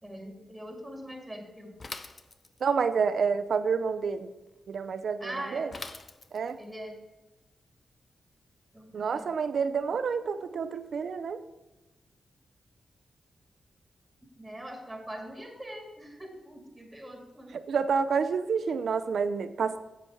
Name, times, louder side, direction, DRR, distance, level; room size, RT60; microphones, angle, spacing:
voice 1, 0.0-1.8 5.2-5.8 6.6-7.0 8.7-9.3 14.4-17.5, right 1 dB, 5° right, 1 dB, 2.0 m, -42 dB
Bicycle / Mechanisms, 1.8-2.8 5.7-6.6, left 3 dB, 35° left, 0.6 m, -42 dB
voice 2, 2.6-4.3 4.7-5.7 6.3-6.6 8.9-11.4 17.7-19.8, right 5 dB, 70° right, 11 dB, 0.6 m, -28 dB
7.8 x 7.6 x 4.6 m, 1.1 s
wide cardioid pair, 110°, 0 cm